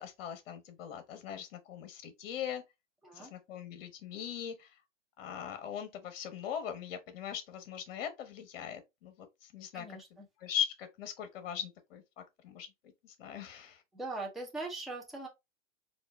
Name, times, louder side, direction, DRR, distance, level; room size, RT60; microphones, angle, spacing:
voice 1, 0.0-2.6 3.1-4.7 5.2-9.8 10.4-12.0 12.4-12.7 13.0-13.8, left 9 dB, 50° left, 1.0 m, -40 dB
voice 2, 9.7-10.3 13.9-15.3, right 2 dB, ahead, 0.6 m, -41 dB
4.2 x 2.5 x 3.4 m
hypercardioid pair, 125°, 37 cm